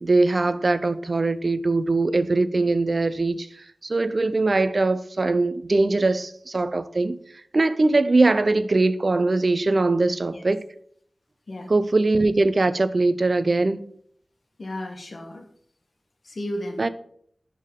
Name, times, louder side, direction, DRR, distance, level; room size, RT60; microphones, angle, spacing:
voice 1, 0.0-3.5 3.8-7.2 7.5-10.6 11.7-13.8 16.8-16.9, right 2 dB, 50° right, 0.4 m, -21 dB
voice 2, 14.6-15.5 16.2-16.9, left 1 dB, 65° left, 1.2 m, -34 dB
10.5 x 3.6 x 3.6 m
wide cardioid pair, 85°, 0 cm